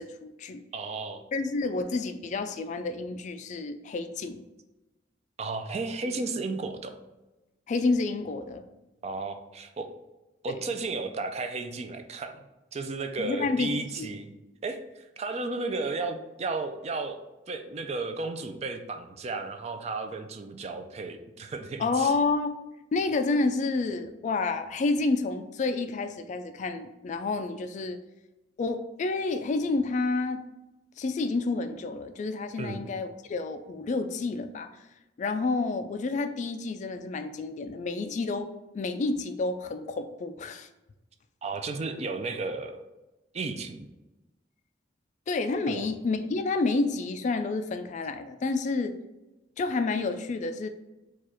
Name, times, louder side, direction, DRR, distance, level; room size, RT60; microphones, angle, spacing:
voice 1, 0.0-0.6 1.3-4.4 7.7-8.6 13.2-14.1 21.8-22.6 22.9-28.0 28.6-30.4 31.0-34.7 35.2-40.7 45.3-48.9 49.6-50.7, left 3 dB, 40° left, 9 dB, 0.3 m, -29 dB
voice 2, 0.7-1.2 5.4-7.0 9.0-9.9 10.4-12.4 12.7-14.3 14.6-17.2 17.5-22.1 32.6-32.8 41.4-42.8 43.3-43.9 45.7-45.9, right 3 dB, 35° right, 7 dB, 0.4 m, -33 dB
4.7 x 2.4 x 4.3 m, 1.0 s
head